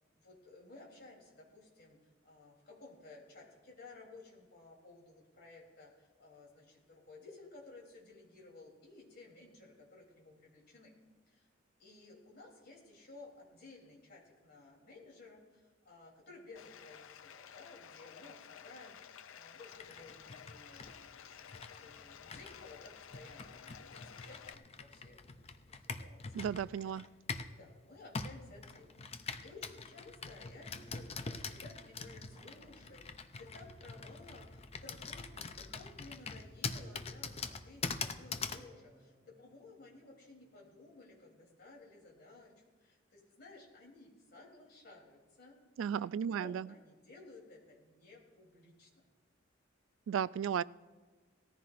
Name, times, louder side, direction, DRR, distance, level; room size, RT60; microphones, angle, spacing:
voice 1, 0.0-2.0 2.2-10.9 11.3-11.5 11.8-25.5 25.8-26.3 26.8-27.1 27.5-42.5 42.8-45.6 46.2-49.0, left 3 dB, 55° left, -1 dB, 3.4 m, -56 dB
Bathtub (filling or washing), 16.6-24.6, left 8 dB, 85° left, 0.5 m, -53 dB
Computer keyboard, 19.7-27.6 28.1-38.7, left 4 dB, 30° left, 0.6 m, -44 dB
voice 2, 26.3-27.1 45.8-46.7 50.1-50.6, right 8 dB, 85° right, 19 dB, 0.3 m, -34 dB
sound 1, 30.7-40.9, equal, 35° right, 4.9 m, -66 dB
18.5 x 14.5 x 2.6 m, 1.4 s
head